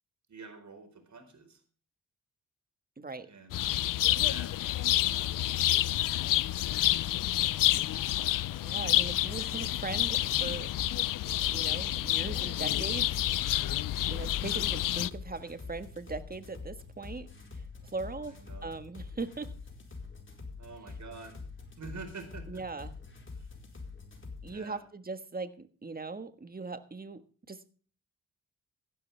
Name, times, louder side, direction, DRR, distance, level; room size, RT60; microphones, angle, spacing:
voice 1, 0.3-1.6 3.2-3.8 4.1-4.7 5.0-6.0 18.3-18.7 20.6-21.4 21.8-22.6 23.3-23.5 24.5-24.8, right 4 dB, 60° right, 7 dB, 4.5 m, -48 dB
voice 2, 3.0-3.3 8.6-10.7 11.5-13.6 14.1-17.3 17.5-19.5 22.5-22.9 24.4-27.2 27.5-27.6, right 3 dB, 25° right, 11 dB, 1.6 m, -40 dB
sound 1, 3.5-15.1, left 14 dB, 75° left, 0.5 m, -29 dB
sound 2, 10.3-24.5, left 4 dB, 35° left, 4.5 m, -45 dB
15.5 x 12.0 x 3.4 m, 0.40 s
cardioid pair, 60°, 33 cm